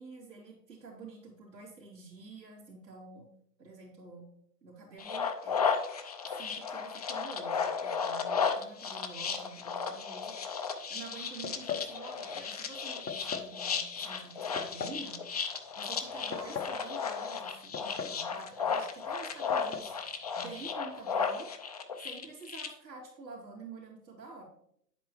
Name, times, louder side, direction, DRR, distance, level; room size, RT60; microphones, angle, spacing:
voice 1, 0.0-3.2 3.6-4.3 4.6-5.6 6.2-10.3 10.9-15.2 15.8-21.5 22.0-24.4, right 3 dB, 90° right, -5 dB, 3.0 m, -48 dB
sound 1, 5.0-22.7, left 6 dB, 25° left, 0.4 m, -34 dB
sound 2, 11.4-11.9 13.1-13.5 14.6-15.0 16.1-16.8 17.7-18.3 18.5-18.6 19.5-19.9, left 7 dB, 85° left, 1.2 m, -38 dB
9.4 x 8.1 x 3.1 m, 0.70 s
hypercardioid pair, 140°, 49 cm